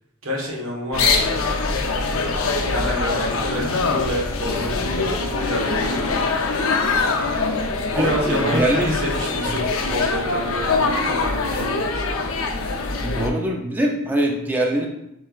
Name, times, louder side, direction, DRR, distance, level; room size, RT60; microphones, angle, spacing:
voice 1, 0.2-1.6 2.6-6.0 7.7-12.0, equal, 90° right, -2 dB, 1.3 m, -28 dB
sound 1, 0.9-13.3, left 3 dB, 85° left, 0.6 m, -23 dB
voice 2, 7.9-8.9 9.5-9.6 13.0-14.9, right 1 dB, 10° right, -1 dB, 0.5 m, -23 dB
6.9 x 3.2 x 2.4 m, 0.84 s
head